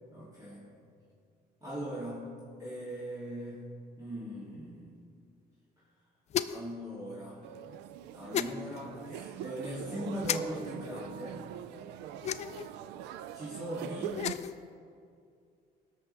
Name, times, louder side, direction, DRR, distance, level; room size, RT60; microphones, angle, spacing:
voice 1, 0.1-0.7 1.6-2.3 2.6-3.6 4.0-4.9 6.5-7.4 8.1-11.4 13.3-14.2, right 1 dB, 20° right, -10 dB, 2.8 m, -39 dB
sound 1, 6.3-6.7 8.3-8.5 10.2-10.4 12.2-12.7 14.0-14.6, left 9 dB, 40° left, 0.4 m, -33 dB
sound 2, 7.4-14.4, right 10 dB, 85° right, 0.4 m, -43 dB
18.5 x 6.5 x 3.4 m, 2.3 s
cardioid pair, 110°, 17 cm